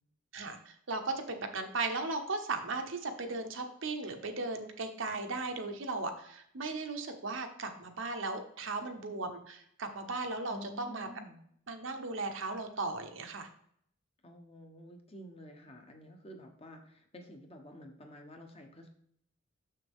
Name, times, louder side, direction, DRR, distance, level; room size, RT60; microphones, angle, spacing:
voice 1, 0.3-11.1 11.7-13.5, right 3 dB, 65° right, 5 dB, 1.0 m, -37 dB
voice 2, 10.5-11.4 14.2-18.9, left 1 dB, 30° left, 3 dB, 1.0 m, -50 dB
6.7 x 6.4 x 3.6 m, 0.66 s
head